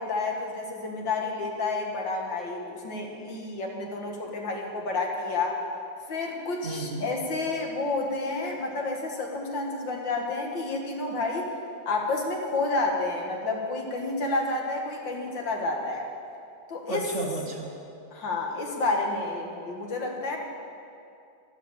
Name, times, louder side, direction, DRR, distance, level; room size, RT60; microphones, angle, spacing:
voice 1, 0.0-5.6 6.1-11.5 11.9-16.1 16.7-17.1 18.1-20.4, left 3 dB, 75° left, 1 dB, 2.4 m, -30 dB
voice 2, 6.6-7.1 16.9-17.7, right 2 dB, 45° right, 2 dB, 1.3 m, -32 dB
12.5 x 12.5 x 7.4 m, 2.5 s
omnidirectional pair, 2.1 m